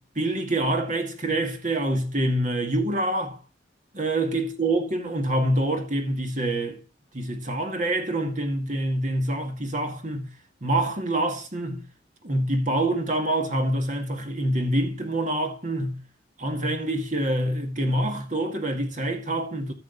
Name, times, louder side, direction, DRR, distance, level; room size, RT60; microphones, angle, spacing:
voice 1, 0.2-3.4 3.9-6.8 7.1-10.3 10.6-11.8 12.2-16.0 16.4-19.7, right 1 dB, 40° right, 2.1 m, -26 dB
14.5 x 6.1 x 4.1 m
head